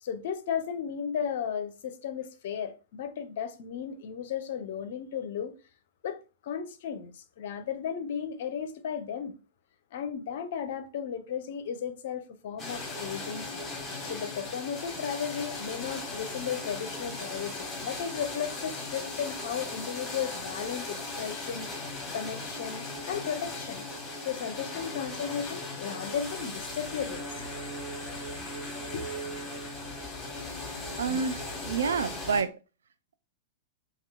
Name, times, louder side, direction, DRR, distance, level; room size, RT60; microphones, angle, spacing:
voice 1, 0.0-5.5 6.0-9.4 9.9-13.6 14.0-23.9 24.3-27.4 28.9-29.1, left 8 dB, 55° left, 0.5 m, -35 dB
sound 1, 12.6-32.4, left 2 dB, 15° left, 1.1 m, -38 dB
voice 2, 31.0-32.6, right 5 dB, 65° right, 0.3 m, -29 dB
2.7 x 2.3 x 3.4 m
figure-of-eight pair, 100°, 0 cm